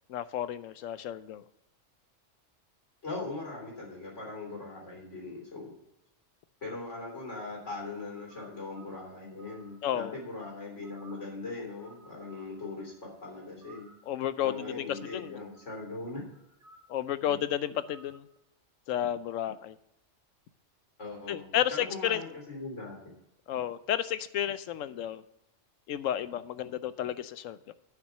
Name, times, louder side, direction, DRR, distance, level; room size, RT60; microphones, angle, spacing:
voice 1, 0.1-1.4 9.8-10.2 14.1-14.9 15.1-15.4 16.9-18.3 18.9-19.8 21.3-22.2 23.5-25.2 25.9-27.7, left 11 dB, 90° left, 14 dB, 1.0 m, -32 dB
voice 2, 3.0-5.8 6.6-13.9 14.4-16.2 17.2-17.4 21.0-23.1, left 3 dB, 70° left, -1 dB, 3.6 m, -40 dB
sound 1, 7.1-7.6 8.0-10.4 10.8-11.4 11.8-13.1 13.6-14.2 14.9-16.0 16.3-17.4 17.8-18.2, right 3 dB, 45° right, 1.4 m, -59 dB
9.7 x 6.0 x 6.5 m, 0.84 s
omnidirectional pair, 1.3 m